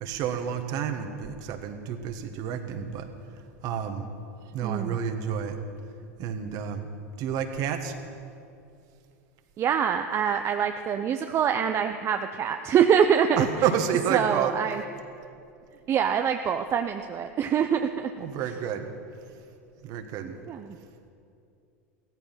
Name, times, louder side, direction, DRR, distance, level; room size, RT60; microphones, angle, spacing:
voice 1, 0.0-3.1 3.6-4.1 4.5-5.6 6.2-6.9 7.2-8.0 13.4-14.5 18.2-18.9 19.8-20.4, right 8 dB, 50° right, 7 dB, 1.6 m, -29 dB
voice 2, 4.6-5.0 9.6-13.4 14.1-14.8 15.9-18.1 20.2-20.8, right 8 dB, 35° right, 6 dB, 0.7 m, -25 dB
16.0 x 14.0 x 5.8 m, 2.5 s
hypercardioid pair, 90°, 8 cm